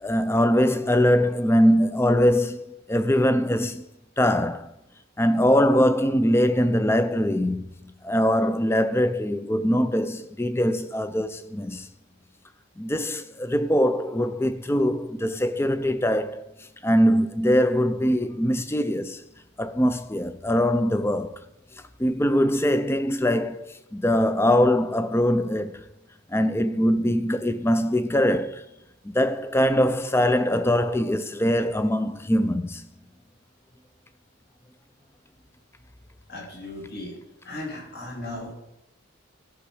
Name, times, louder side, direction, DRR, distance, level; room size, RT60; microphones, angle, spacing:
voice 1, 0.0-3.8 4.2-4.7 5.2-7.6 8.0-11.9 12.8-16.4 16.8-19.2 19.6-21.4 22.0-25.8 26.3-28.6 29.0-32.8, equal, 10° left, 0.4 m, -22 dB
voice 2, 36.3-37.1 37.4-38.5, left 1 dB, 45° left, 2.5 m, -36 dB
13.5 x 6.1 x 4.9 m
head